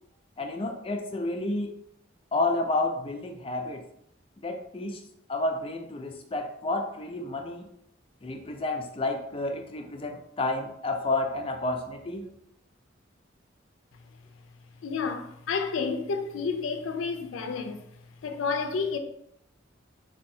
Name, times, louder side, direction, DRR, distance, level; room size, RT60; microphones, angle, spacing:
voice 1, 0.4-1.7 2.3-3.8 4.4-5.0 5.3-7.7 8.2-12.3, left 2 dB, 30° left, 0.4 m, -30 dB
voice 2, 14.8-17.8 18.2-19.0, left 5 dB, 90° left, 0.4 m, -30 dB
4.2 x 2.7 x 2.7 m
head